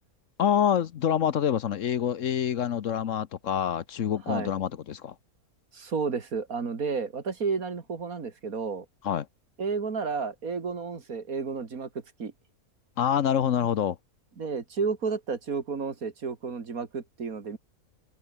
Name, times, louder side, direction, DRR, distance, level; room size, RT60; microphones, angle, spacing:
voice 1, 0.4-5.1 9.0-9.3 13.0-14.0, left 9 dB, 60° left, 1.1 m, -26 dB
voice 2, 5.7-8.9 9.6-11.9 12.2-12.3 14.4-17.6, right 5 dB, 70° right, 2.6 m, -31 dB
omnidirectional pair, 1.6 m